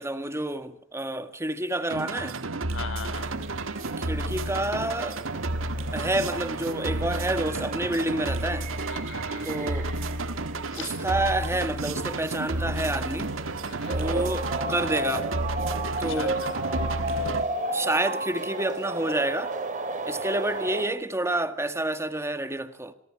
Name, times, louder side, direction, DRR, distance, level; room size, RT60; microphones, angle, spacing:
voice 1, 0.0-2.4 4.0-5.2 5.9-8.7 9.4-9.9 10.8-13.3 13.9-15.3 16.0-16.4 17.7-19.5 20.1-22.9, right 1 dB, 15° right, 1.7 m, -29 dB
sound 1, 1.9-17.4, right 2 dB, 90° right, 1.6 m, -31 dB
voice 2, 2.7-3.3 8.9-9.5 10.7-11.0 13.6-14.0 16.1-16.6, left 5 dB, 70° left, 5.3 m, -39 dB
sound 2, 3.2-20.9, right 2 dB, 40° right, 4.8 m, -34 dB
26.5 x 26.0 x 4.8 m
head